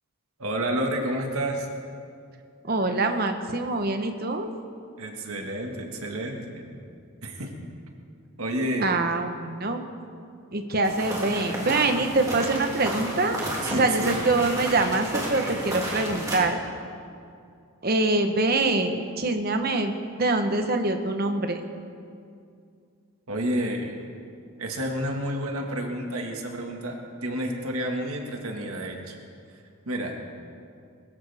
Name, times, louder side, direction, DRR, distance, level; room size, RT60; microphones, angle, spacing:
voice 1, 0.4-1.7 5.0-6.7 7.2-7.5 8.4-9.0 13.6-14.1 23.3-24.0 24.6-29.1 29.9-30.2, right 1 dB, 75° right, 2 dB, 1.7 m, -30 dB
voice 2, 2.6-4.5 8.8-9.8 10.5-16.6 17.8-21.6, right 2 dB, 45° right, 6 dB, 1.0 m, -25 dB
sound 1, 10.8-16.4, right 1 dB, 15° right, 2.5 m, -32 dB
21.5 x 14.0 x 3.5 m, 2.4 s
head